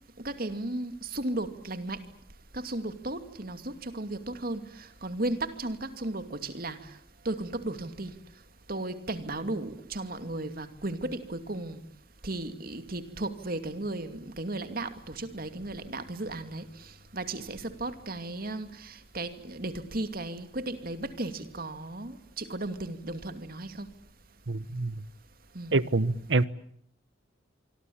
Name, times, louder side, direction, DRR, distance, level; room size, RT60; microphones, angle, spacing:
voice 1, 0.2-2.0 2.5-6.8 7.2-8.1 8.7-11.8 12.2-23.9 25.5-25.7, right 2 dB, 50° right, 2.5 m, -35 dB
voice 2, 24.5-25.0 25.7-26.4, right 3 dB, 70° right, 1.1 m, -26 dB
26.0 x 25.0 x 8.7 m
head